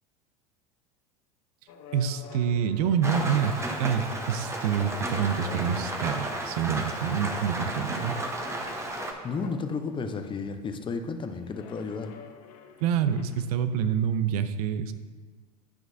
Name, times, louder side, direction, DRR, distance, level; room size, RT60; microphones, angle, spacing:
sound 1, 1.7-6.0 6.5-6.9 7.6-10.4 11.5-13.5, left 7 dB, 65° left, 0.8 m, -48 dB
voice 1, 1.9-8.2 12.8-14.9, right 7 dB, 65° right, 11 dB, 0.6 m, -27 dB
Rain, 3.0-9.1, right 1 dB, 15° right, 0.9 m, -33 dB
voice 2, 9.2-12.1, left 4 dB, 25° left, 7 dB, 0.7 m, -33 dB
9.9 x 6.0 x 2.7 m, 1.4 s
hypercardioid pair, 80°, 21 cm